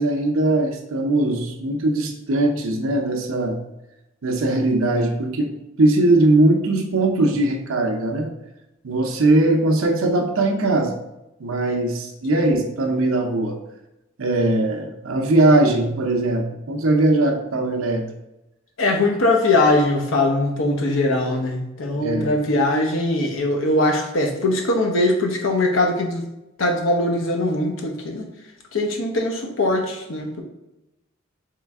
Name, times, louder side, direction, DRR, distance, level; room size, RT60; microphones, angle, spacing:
voice 1, 0.0-3.6 4.2-5.5 5.8-8.3 8.8-10.9 11.4-13.6 14.2-18.0 21.9-22.4, right 2 dB, 80° right, 3 dB, 0.7 m, -20 dB
voice 2, 18.8-26.3 26.6-28.3 28.7-30.4, left 2 dB, 70° left, 2 dB, 0.8 m, -21 dB
3.8 x 3.2 x 3.5 m, 0.92 s
head